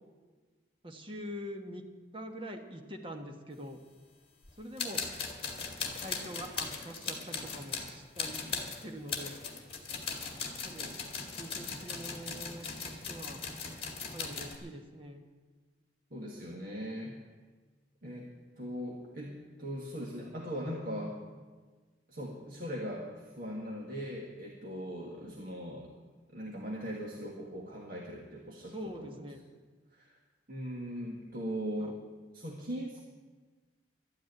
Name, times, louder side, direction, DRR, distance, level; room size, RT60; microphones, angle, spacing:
voice 1, 0.8-1.8 2.1-3.8 4.6-5.0 6.0-9.4 10.6-11.0 11.3-13.4 14.1-15.2 28.7-29.4 31.8-32.0, equal, 30° right, 4 dB, 1.4 m, -44 dB
sound 1, 4.4-4.5 4.8-14.6, left 5 dB, 30° left, 2.0 m, -38 dB
voice 2, 16.1-17.1 18.0-18.3 18.6-21.2 22.1-25.9 26.3-29.2 29.9-30.1 30.5-32.0 32.3-33.0, equal, 50° right, -2 dB, 1.8 m, -39 dB
12.5 x 9.5 x 9.6 m, 1.4 s
head